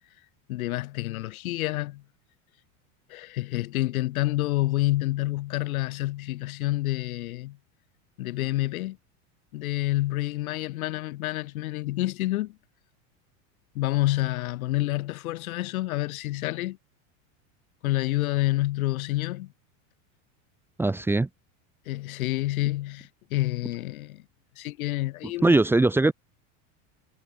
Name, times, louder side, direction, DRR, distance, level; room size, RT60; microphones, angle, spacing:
voice 1, 0.5-2.0 3.1-7.6 8.2-9.0 9.5-12.6 13.7-16.8 17.8-19.5 21.8-24.2 24.6-25.6, left 17 dB, 80° left, 6.5 m, -28 dB
voice 2, 20.8-21.3 25.4-26.1, right 2 dB, 5° right, 1.4 m, -20 dB
supercardioid pair, 170°, 42 cm